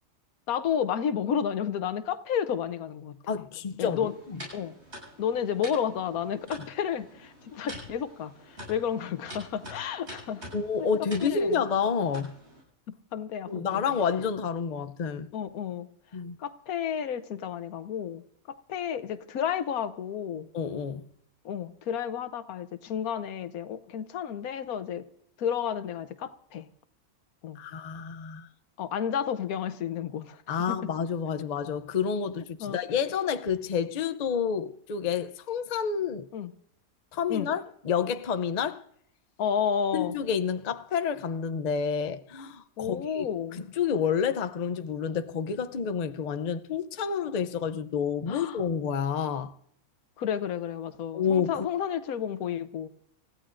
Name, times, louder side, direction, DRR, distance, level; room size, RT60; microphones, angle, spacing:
voice 1, 0.5-3.2 3.8-4.1 4.5-4.8 5.2-10.4 10.8-10.9 11.2-11.6 12.9-13.8 15.3-15.9 16.4-20.5 21.4-25.0 25.4-26.7 27.4-27.6 28.8-30.8 32.6-32.8 36.3-36.5 37.3-37.5 39.4-40.1 42.8-43.6 48.3-48.6 50.2-52.9, left 8 dB, 80° left, 1.3 m, -31 dB
voice 2, 3.3-4.4 10.5-12.3 13.5-15.3 16.1-16.4 20.5-21.0 27.6-28.5 30.5-36.3 37.1-38.8 39.9-43.3 43.6-49.5 51.1-51.7, left 6 dB, 50° left, 0.5 m, -29 dB
sound 1, 3.8-12.6, equal, 45° right, 8.4 m, -46 dB
28.5 x 15.0 x 2.5 m
omnidirectional pair, 1.5 m